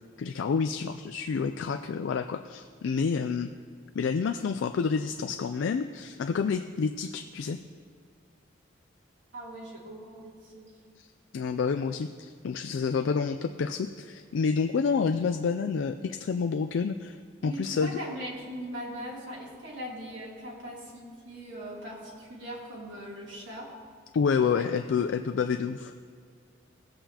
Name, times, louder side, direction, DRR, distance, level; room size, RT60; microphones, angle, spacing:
voice 1, 0.2-3.5 3.9-7.6 11.0-11.1 11.3-17.2 17.4-18.0 24.1-25.9, left 5 dB, 80° left, 8 dB, 0.4 m, -28 dB
voice 2, 9.3-10.7 17.4-23.7 24.3-24.6 25.0-25.1, equal, 75° right, -6 dB, 2.9 m, -40 dB
17.0 x 7.8 x 2.9 m, 2.2 s
head